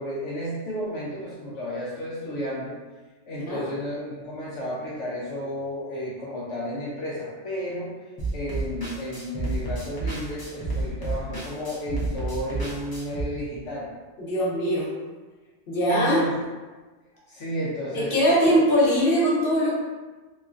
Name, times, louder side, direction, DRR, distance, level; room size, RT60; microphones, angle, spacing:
voice 1, 0.0-2.7 3.3-7.9 8.3-13.9 15.8-16.3 17.3-18.6, equal, 75° left, -7 dB, 0.9 m, -32 dB
sound 1, 8.2-13.2, right 2 dB, 30° left, 0.5 m, -30 dB
voice 2, 14.2-14.9 15.7-16.2 17.9-19.8, equal, 50° left, -6 dB, 1.0 m, -21 dB
3.1 x 2.3 x 2.4 m, 1.3 s
omnidirectional pair, 1.3 m